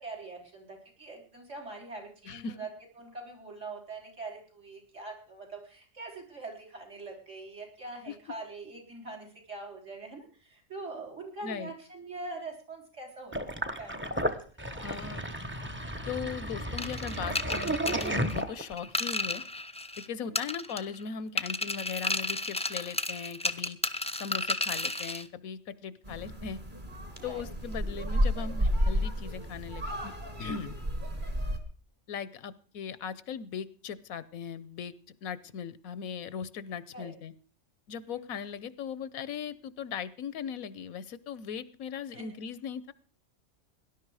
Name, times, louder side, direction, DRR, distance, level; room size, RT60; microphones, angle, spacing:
voice 1, 0.0-2.7 3.0-14.4 14.7-14.9 20.2-20.4 27.2-27.4 36.9-37.1 38.1-38.4 42.1-42.2, right 3 dB, 60° right, 3 dB, 4.6 m, -43 dB
voice 2, 2.2-2.6 8.1-8.2 11.4-11.7 14.8-15.2 16.1-19.4 20.0-23.8 24.2-26.6 27.2-30.1 30.4-30.8 32.1-34.9 35.2-37.3 37.9-42.9, left 7 dB, 85° left, 17 dB, 1.3 m, -38 dB
Sink (filling or washing), 13.3-18.9, right 1 dB, 10° right, 0.9 m, -33 dB
sound 1, 16.8-20.1 20.3-21.0 21.4-25.2, left 2 dB, 10° left, 0.3 m, -33 dB
sound 2, 26.1-31.6, equal, 35° right, 2.4 m, -31 dB
18.5 x 11.0 x 4.8 m, 0.41 s
omnidirectional pair, 1.4 m